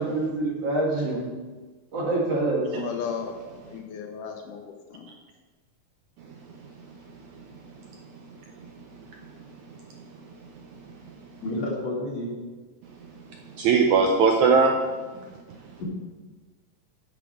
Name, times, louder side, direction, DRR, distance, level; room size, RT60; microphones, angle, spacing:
voice 1, 0.0-1.3 1.9-2.9, right 2 dB, 50° right, -3 dB, 2.5 m, -26 dB
voice 2, 2.7-3.4 3.7-5.1, left 7 dB, 75° left, 4 dB, 2.2 m, -35 dB
voice 3, 9.0-10.1 10.6-10.7 11.1-11.3 13.1-13.2 13.5-14.8, right 5 dB, 75° right, 2 dB, 1.8 m, -22 dB
voice 4, 11.4-12.4 15.1-15.3 15.8-15.9, left 1 dB, 50° left, -6 dB, 4.0 m, -30 dB
12.0 x 7.1 x 5.0 m, 1.3 s
omnidirectional pair, 4.0 m